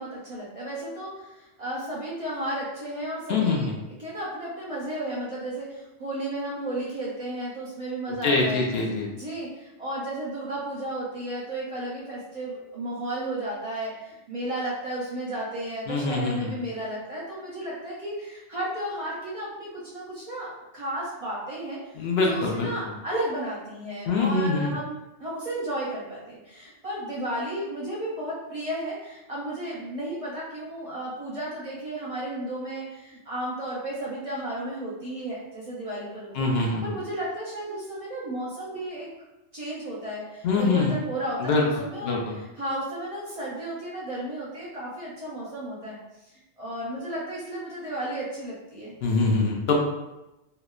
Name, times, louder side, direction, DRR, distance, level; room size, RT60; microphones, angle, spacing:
voice 1, 0.0-3.7 4.0-8.7 9.1-21.8 22.2-39.1 39.5-46.0 46.6-49.0, right 1 dB, 40° right, -7 dB, 0.5 m, -33 dB
voice 2, 3.3-3.7 8.2-9.1 15.9-16.5 22.0-22.7 24.1-24.7 36.4-36.8 40.4-40.9 41.4-41.6 42.0-42.3 49.0-49.8, left 3 dB, 65° left, -1 dB, 0.7 m, -24 dB
2.9 x 2.1 x 2.3 m, 0.97 s
omnidirectional pair, 1.3 m